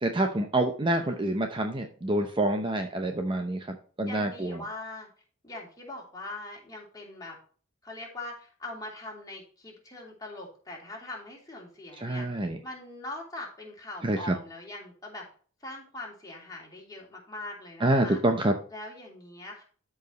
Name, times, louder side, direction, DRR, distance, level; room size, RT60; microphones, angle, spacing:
voice 1, 0.0-4.6 12.0-12.6 14.0-14.3 17.8-18.5, right 1 dB, 25° right, 4 dB, 0.8 m, -27 dB
voice 2, 0.8-1.2 4.0-5.1 5.4-7.4 7.8-15.3 15.6-18.2 18.7-19.6, left 2 dB, 15° left, -2 dB, 3.0 m, -42 dB
13.5 x 4.8 x 3.0 m, 0.42 s
head